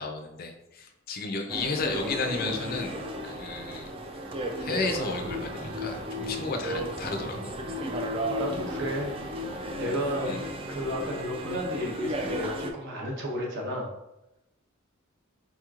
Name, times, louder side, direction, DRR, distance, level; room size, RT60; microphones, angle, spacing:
voice 1, 0.0-3.9 4.6-7.5 10.3-10.5, left 3 dB, 45° left, 4 dB, 0.4 m, -33 dB
sound 1, 1.5-12.7, equal, 25° right, 0.4 m, -34 dB
voice 2, 8.3-9.1 9.8-10.4 10.7-13.9, equal, 60° right, -2 dB, 0.9 m, -32 dB
4.3 x 2.9 x 2.4 m, 0.91 s
head